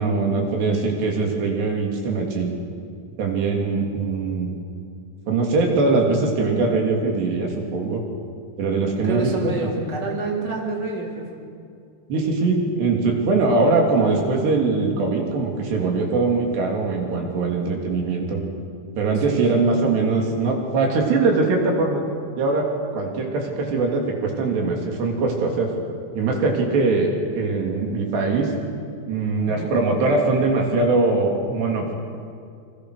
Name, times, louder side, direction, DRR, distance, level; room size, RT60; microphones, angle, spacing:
voice 1, 0.0-2.5 3.2-4.6 5.3-8.0 8.6-9.5 12.1-18.4 19.0-22.0 22.4-22.7 22.9-25.7 26.2-27.1 27.4-28.5 29.1-31.9, right 3 dB, 80° right, 1 dB, 5.2 m, -21 dB
voice 2, 9.0-11.3 19.2-19.4 29.5-29.7, right 3 dB, 25° right, -1 dB, 4.0 m, -28 dB
28.5 x 26.0 x 6.6 m, 2.3 s
omnidirectional pair, 4.8 m